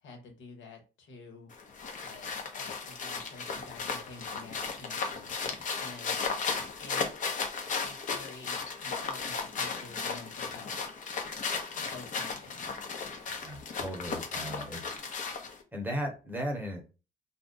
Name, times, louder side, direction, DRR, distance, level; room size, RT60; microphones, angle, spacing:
voice 1, 0.0-5.3 5.8-6.2 6.8-7.0 7.8-10.8 11.7-12.8, left 3 dB, 75° left, 2 dB, 1.3 m, -49 dB
sound 1, 1.5-15.6, left 5 dB, 40° left, 0.8 m, -35 dB
voice 2, 13.4-15.0 15.3-15.4 15.7-16.8, equal, 10° right, 1 dB, 1.0 m, -36 dB
2.5 x 2.3 x 3.9 m, 0.32 s
cardioid pair, 125°, 20 cm